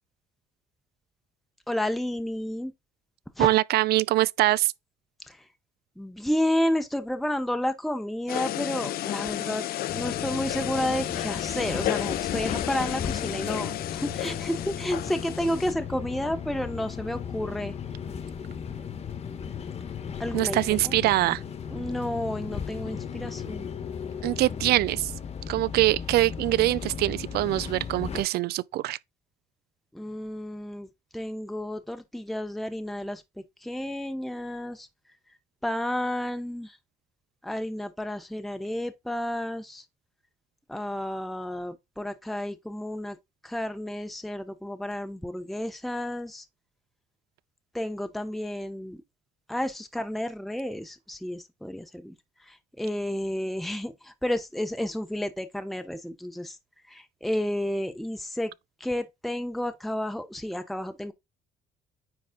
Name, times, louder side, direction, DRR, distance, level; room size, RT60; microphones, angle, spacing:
voice 1, 1.7-2.7 3.4-3.5 5.3-5.4 6.0-9.7 9.9-17.7 20.2-20.6 20.8-20.9 21.7-23.7 29.9-30.9 31.1-33.2 33.6-34.9 35.6-36.8 37.4-39.8 40.7-43.2 43.4-46.4 47.7-49.0 49.5-52.1 52.5-56.6 56.9-58.5 58.8-61.1, left 1 dB, ahead, 0.8 m, -31 dB
voice 2, 3.4-4.7 20.3-21.4 24.2-25.1 25.5-29.0, right 17 dB, 70° right, 0.5 m, -23 dB
sound 1, 8.3-15.7, left 14 dB, 65° left, 0.5 m, -32 dB
sound 2, 9.9-28.2, left 7 dB, 40° left, 1.3 m, -36 dB
9.5 x 3.9 x 3.7 m
cardioid pair, 110°, 17 cm